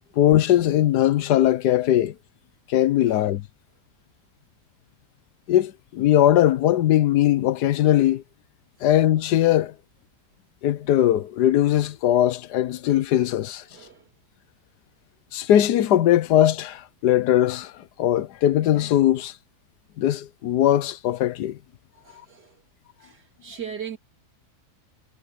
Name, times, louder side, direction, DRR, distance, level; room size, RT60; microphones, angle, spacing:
voice 1, 0.2-2.1 2.7-3.4 5.5-8.2 8.8-9.7 10.6-13.6 15.3-17.7 18.0-19.3 20.0-21.6, left 12 dB, 85° left, 1.4 m, -20 dB
voice 2, 13.7-14.1 22.0-22.6 23.0-24.0, right 8 dB, 85° right, 3.5 m, -39 dB
omnidirectional pair, 1.7 m